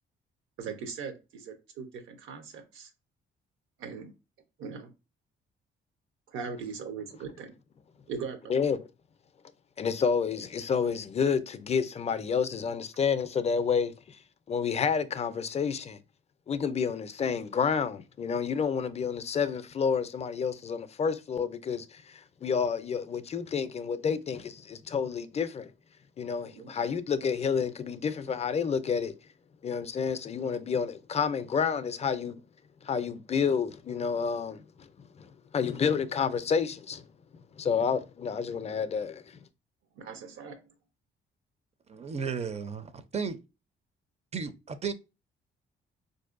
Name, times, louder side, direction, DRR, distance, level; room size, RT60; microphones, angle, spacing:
voice 1, 0.6-2.9 3.8-4.1 4.6-4.9 6.3-7.5 8.1-8.4 26.4-26.7 39.9-40.7, right 5 dB, 80° right, 0.7 m, -40 dB
voice 2, 9.8-14.2 14.5-16.0 16.5-25.7 26.2-29.1 29.6-32.4 32.8-37.1 37.6-39.4, left 6 dB, 35° left, 0.4 m, -29 dB
voice 3, 41.9-43.4 44.3-44.9, right 6 dB, 35° right, 0.4 m, -34 dB
4.2 x 2.6 x 2.4 m
cardioid pair, 90°, 20 cm